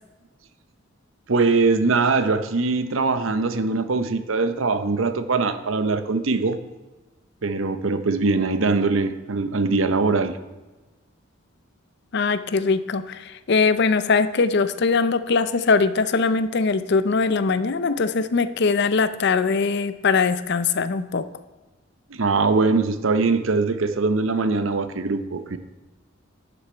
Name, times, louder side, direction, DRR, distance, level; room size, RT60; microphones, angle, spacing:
voice 1, 1.3-6.6 7.4-10.4 22.1-25.6, right 3 dB, 75° right, 11 dB, 0.7 m, -22 dB
voice 2, 12.1-21.2, left 4 dB, 55° left, 13 dB, 0.5 m, -21 dB
11.5 x 6.7 x 4.4 m, 1.2 s
head